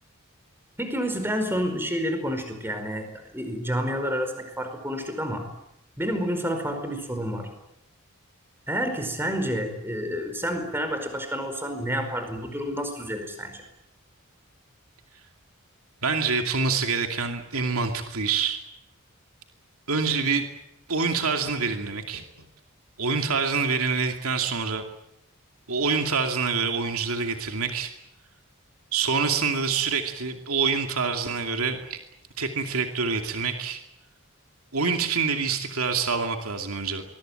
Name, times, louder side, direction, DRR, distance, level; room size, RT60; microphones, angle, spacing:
voice 1, 0.8-5.5 6.0-7.5 8.7-13.6, equal, 10° right, 7 dB, 4.9 m, -29 dB
voice 2, 16.0-18.6 19.9-20.5 20.9-22.5 23.0-24.8 25.7-27.9 28.9-32.0 32.4-33.8 34.7-37.0, right 5 dB, 80° right, 5 dB, 2.5 m, -26 dB
23.5 x 22.0 x 9.1 m, 0.82 s
head